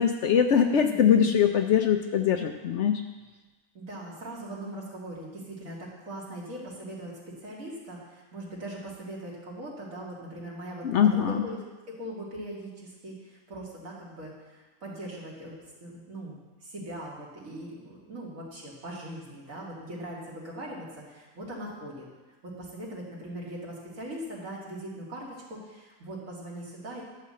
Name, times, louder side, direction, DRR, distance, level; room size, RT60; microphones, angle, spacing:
voice 1, 0.0-3.0 10.8-11.4, left 8 dB, 65° left, 6 dB, 0.8 m, -22 dB
voice 2, 0.8-1.3 3.7-22.1 22.4-27.0, right 1 dB, 65° right, -4 dB, 2.5 m, -40 dB
11.5 x 4.2 x 7.5 m, 1.3 s
omnidirectional pair, 1.5 m